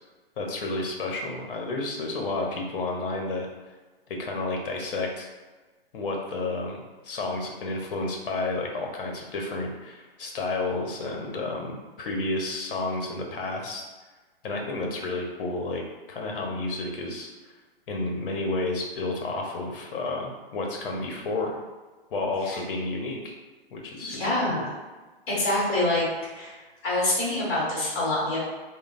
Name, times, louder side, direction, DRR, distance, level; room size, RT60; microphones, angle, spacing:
voice 1, 0.4-3.5 4.2-5.3 5.9-13.8 14.4-15.8 16.1-17.3 17.9-21.5 22.1-23.3 23.7-24.2 24.5-24.7, left 2 dB, 65° left, 1 dB, 0.8 m, -31 dB
voice 2, 24.1-24.7 25.3-26.1 26.3-26.6 26.8-28.4, left 2 dB, 25° left, -7 dB, 1.3 m, -26 dB
3.1 x 2.0 x 2.4 m, 1.3 s
hypercardioid pair, 145°, 30 cm